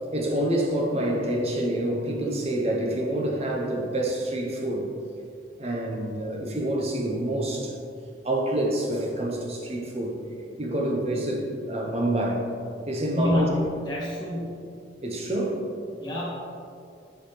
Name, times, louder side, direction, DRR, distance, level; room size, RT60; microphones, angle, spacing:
voice 1, 0.1-4.9 5.6-7.8 8.2-10.2 10.6-12.4 12.9-13.5 15.0-15.6, right 1 dB, 35° right, -1 dB, 0.9 m, -27 dB
voice 2, 13.1-14.7 16.0-16.3, left 1 dB, 25° left, -7 dB, 1.6 m, -28 dB
9.6 x 4.0 x 3.3 m, 2.4 s
head